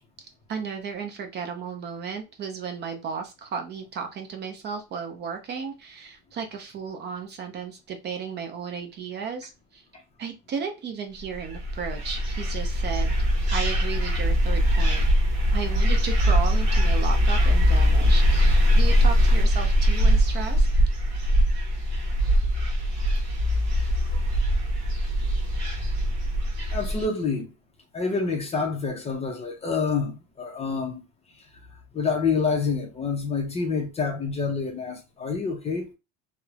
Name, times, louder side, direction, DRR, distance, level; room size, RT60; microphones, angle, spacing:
voice 1, 0.5-9.8 10.2-13.1 13.5-15.0 15.5-20.7, right 6 dB, 35° right, 0.5 m, -34 dB
sound 1, 11.4-27.1, equal, 60° right, 1.0 m, -22 dB
voice 2, 26.7-27.5 27.9-31.0 31.9-35.9, left 5 dB, 20° left, 0.5 m, -27 dB
2.9 x 2.0 x 2.3 m
cardioid pair, 135°, 31 cm